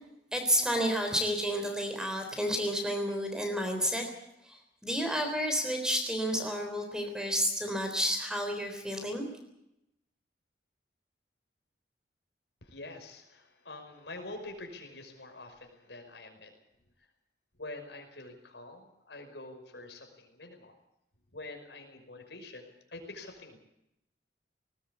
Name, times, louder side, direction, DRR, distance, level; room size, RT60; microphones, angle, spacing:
voice 1, 0.3-4.1 4.4-4.6 4.8-9.3, equal, 5° right, 4 dB, 3.7 m, -30 dB
voice 2, 12.6-16.5 17.6-20.7 21.3-23.6, left 2 dB, 75° left, 5 dB, 5.4 m, -46 dB
19.5 x 19.5 x 8.2 m, 0.84 s
head